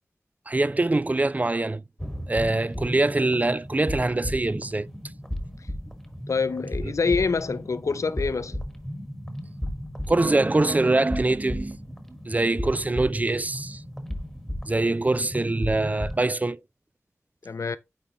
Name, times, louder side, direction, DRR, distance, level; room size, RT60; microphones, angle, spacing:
voice 1, 0.5-1.8 2.3-4.9 6.8-6.9 10.1-11.9 12.3-13.8 14.7-16.6, right 2 dB, 30° right, 0.4 m, -24 dB
sound 1, 2.0-16.2, equal, 5° left, 1.4 m, -35 dB
voice 2, 6.3-8.6 17.4-17.8, left 4 dB, 75° left, 0.5 m, -26 dB
8.8 x 3.7 x 2.9 m
cardioid pair, 45°, 5 cm